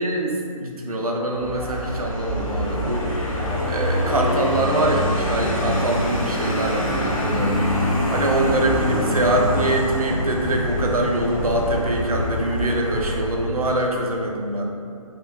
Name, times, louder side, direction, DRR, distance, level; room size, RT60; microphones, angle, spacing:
voice 1, 0.0-3.2 3.7-7.6 8.1-14.6, right 1 dB, 80° right, 0 dB, 0.5 m, -24 dB
Vehicle, 1.4-13.6, equal, 65° left, 0.7 m, -24 dB
2.7 x 2.1 x 2.8 m, 2.3 s
figure-of-eight pair, 140°, 19 cm